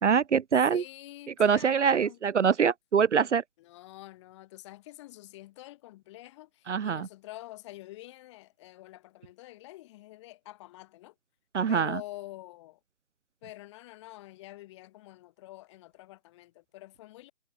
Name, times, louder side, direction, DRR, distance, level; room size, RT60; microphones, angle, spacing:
voice 1, 0.0-0.8 1.4-3.4 6.7-7.1 11.5-12.0, right 6 dB, 65° right, 0.8 m, -24 dB
voice 2, 0.7-2.2 3.6-11.1 11.7-12.8 13.4-17.3, left 17 dB, 20° left, 5.1 m, -47 dB
figure-of-eight pair, 160°, 39 cm